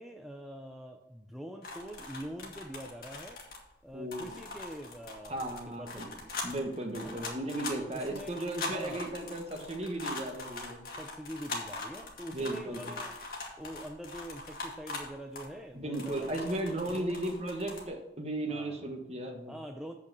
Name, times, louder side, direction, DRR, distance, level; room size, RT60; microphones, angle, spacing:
voice 1, 0.0-3.4 3.8-6.3 7.0-7.3 7.7-8.4 8.7-9.1 11.0-13.2 13.6-17.4 18.5-18.8 19.5-19.9, equal, ahead, 2 dB, 0.4 m, -45 dB
sound 1, 1.6-3.8 4.1-15.6 15.9-17.8, left 3 dB, 50° left, 1.9 m, -41 dB
voice 2, 3.9-4.3 5.3-6.1 6.4-10.8 12.3-12.9 15.7-19.5, right 1 dB, 35° right, 4 dB, 1.2 m, -35 dB
8.2 x 5.8 x 6.1 m, 0.93 s
head